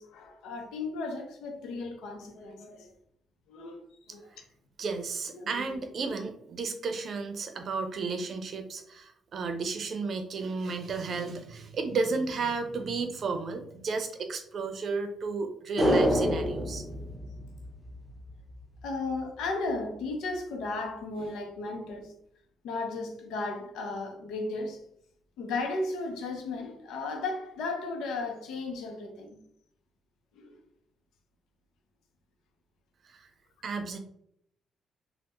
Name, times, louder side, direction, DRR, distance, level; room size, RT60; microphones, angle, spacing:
voice 1, 0.0-2.9 3.5-4.3 5.3-5.8 18.8-22.1 22.6-24.8 25.4-29.4 30.4-30.6, left 3 dB, 90° left, 0.6 m, -35 dB
voice 2, 4.8-16.8 33.2-33.3 33.6-34.0, right 4 dB, 55° right, 0.5 m, -33 dB
sound 1, 15.8-18.2 18.5-18.6, equal, ahead, 0.7 m, -27 dB
3.3 x 2.1 x 2.9 m
cardioid pair, 90°, 0 cm